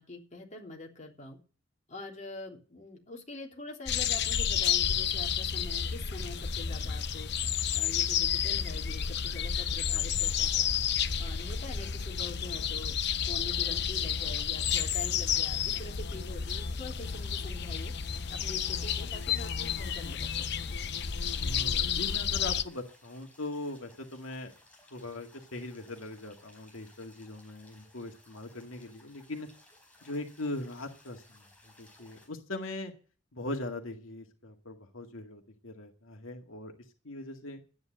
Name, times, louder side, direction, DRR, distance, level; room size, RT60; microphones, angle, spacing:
voice 1, 0.0-1.4 1.9-7.3 7.7-10.7 11.2-17.9 18.3-20.7, left 2 dB, 35° left, 0 dB, 3.5 m, -45 dB
sound 1, 3.9-22.6, left 8 dB, 55° left, 0.8 m, -31 dB
sound 2, 17.0-32.3, left 2 dB, 5° left, 5.0 m, -60 dB
voice 2, 21.4-24.5 24.9-29.5 30.0-31.4 31.8-32.9 33.3-36.7 37.0-37.6, left 2 dB, 90° left, 3 dB, 2.1 m, -40 dB
12.5 x 9.6 x 7.7 m, 0.38 s
head